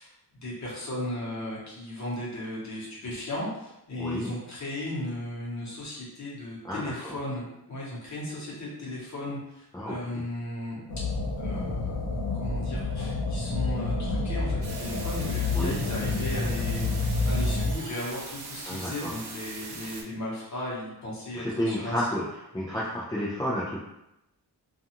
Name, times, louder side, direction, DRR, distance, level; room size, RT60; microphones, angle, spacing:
voice 1, 0.0-10.8 11.4-22.0, left 1 dB, 45° left, -6 dB, 1.0 m, -36 dB
voice 2, 4.0-4.3 6.6-7.2 9.7-10.2 15.5-15.8 18.7-19.1 21.3-22.2 22.5-23.8, equal, 10° left, -8 dB, 0.3 m, -31 dB
sound 1, 10.9-17.7, left 3 dB, 60° left, 0.6 m, -29 dB
sound 2, 14.6-20.0, right 3 dB, 75° right, 0.6 m, -41 dB
2.5 x 2.3 x 2.8 m, 0.86 s
wide cardioid pair, 175°, 40 cm